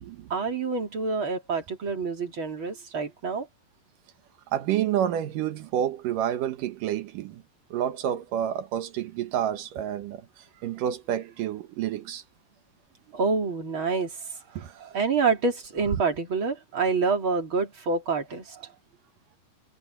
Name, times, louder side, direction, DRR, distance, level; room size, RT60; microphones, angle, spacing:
voice 1, 0.3-3.5 13.1-14.2 14.8-18.7, right 4 dB, 35° right, 3.3 m, -27 dB
voice 2, 4.5-7.4 7.7-10.2 10.6-12.2 14.6-14.7, right 10 dB, 65° right, 2.4 m, -29 dB
omnidirectional pair, 4.7 m